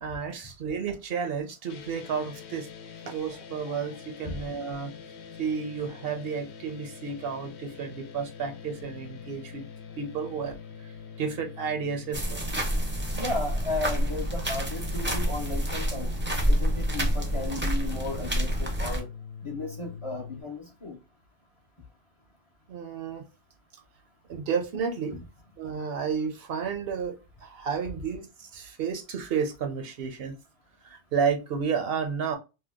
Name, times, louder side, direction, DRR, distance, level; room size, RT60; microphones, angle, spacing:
voice 1, 0.0-2.7 3.0-4.9 5.4-9.7 10.0-10.6 11.2-12.5 22.7-23.2 24.3-25.2 25.6-30.4 30.8-32.4, right 6 dB, 65° right, 5 dB, 0.7 m, -31 dB
sound 1, 1.7-20.4, left 7 dB, 80° left, 0.9 m, -44 dB
sound 2, 12.1-19.0, equal, 15° right, 0.4 m, -28 dB
voice 2, 13.1-16.1 16.5-19.1 19.4-21.0, left 2 dB, 35° left, 1 dB, 0.5 m, -34 dB
2.8 x 2.1 x 3.3 m, 0.28 s
omnidirectional pair, 1.1 m